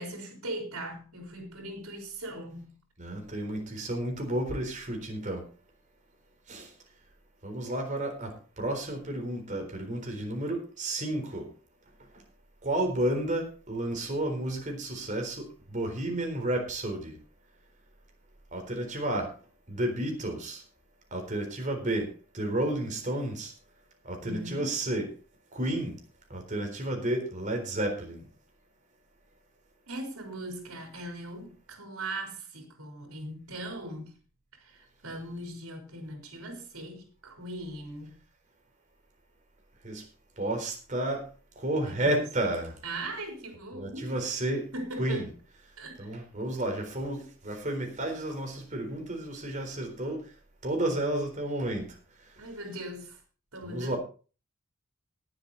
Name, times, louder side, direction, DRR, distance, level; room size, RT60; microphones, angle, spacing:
voice 1, 0.0-2.8 24.2-24.7 29.9-34.1 34.5-38.2 41.8-42.2 42.8-44.2 44.7-45.2 45.8-46.1 52.4-53.2 53.5-54.0, right 1 dB, 80° right, 3 dB, 4.2 m, -39 dB
voice 2, 3.0-5.4 6.5-6.7 7.4-11.5 12.6-17.1 18.5-19.3 19.7-20.6 21.1-23.5 24.0-25.1 25.5-26.0 26.3-28.2 39.8-40.0 40.4-41.2 41.6-42.8 43.7-44.7 45.0-45.3 46.0-50.2 50.6-51.9 53.6-54.0, right 1 dB, 35° right, 3 dB, 4.0 m, -31 dB
19.0 x 7.9 x 4.1 m, 0.36 s
head